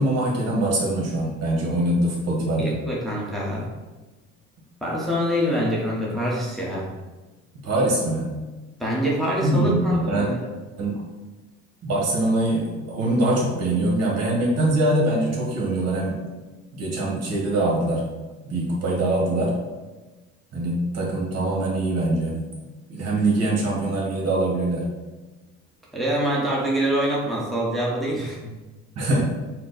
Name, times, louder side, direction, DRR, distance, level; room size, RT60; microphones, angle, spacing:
voice 1, 0.0-2.8 7.6-8.3 9.4-10.3 10.8-11.0 11.8-16.2 16.7-18.0 18.4-19.5 20.5-22.4 22.9-24.9 29.0-29.2, right 1 dB, 55° right, -2 dB, 1.5 m, -23 dB
voice 2, 2.6-3.7 4.8-6.9 8.8-10.5 25.9-28.5, equal, ahead, -5 dB, 1.1 m, -25 dB
4.5 x 2.3 x 4.1 m, 1.2 s
supercardioid pair, 90°, 29 cm